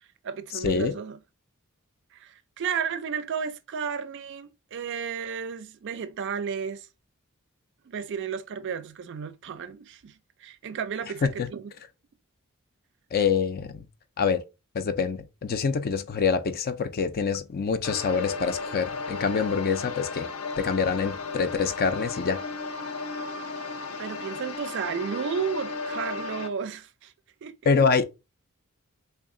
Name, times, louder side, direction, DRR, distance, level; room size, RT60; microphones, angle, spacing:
voice 1, 0.2-1.2 2.1-6.9 7.9-10.1 10.4-11.7 24.0-27.1 27.4-27.6, right 6 dB, 55° right, 0.4 m, -33 dB
voice 2, 13.1-13.9 14.2-14.4 14.7-20.3 20.6-22.4 27.7-28.0, left 5 dB, 45° left, 0.4 m, -25 dB
sound 1, 17.8-26.5, left 4 dB, 80° left, 0.7 m, -34 dB
3.5 x 2.3 x 3.6 m
head